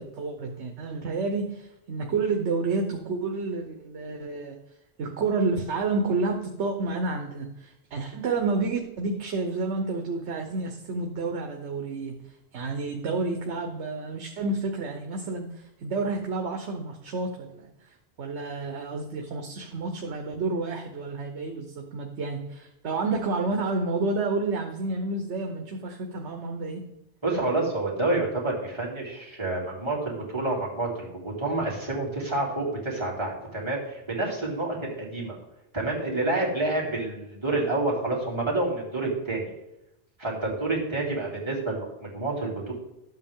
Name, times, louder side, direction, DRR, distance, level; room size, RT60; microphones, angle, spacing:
voice 1, 0.0-4.6 5.0-12.2 12.5-17.7 18.2-26.8, right 3 dB, 75° right, 3 dB, 1.2 m, -30 dB
voice 2, 27.2-35.3 35.7-39.5 40.2-42.7, right 2 dB, 25° right, -5 dB, 3.0 m, -28 dB
12.0 x 8.0 x 3.7 m, 0.87 s
omnidirectional pair, 1.2 m